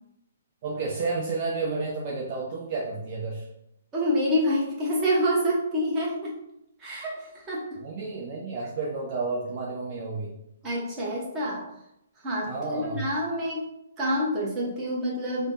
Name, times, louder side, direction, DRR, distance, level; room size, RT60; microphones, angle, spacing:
voice 1, 0.6-3.5 7.8-10.3 12.5-13.0, right 3 dB, 45° right, -4 dB, 0.6 m, -31 dB
voice 2, 3.9-6.3 6.8-7.6 10.6-11.6 12.2-13.6 14.0-15.5, equal, 20° right, -5 dB, 1.0 m, -27 dB
3.3 x 2.1 x 2.7 m, 0.82 s
hypercardioid pair, 130°, 0 cm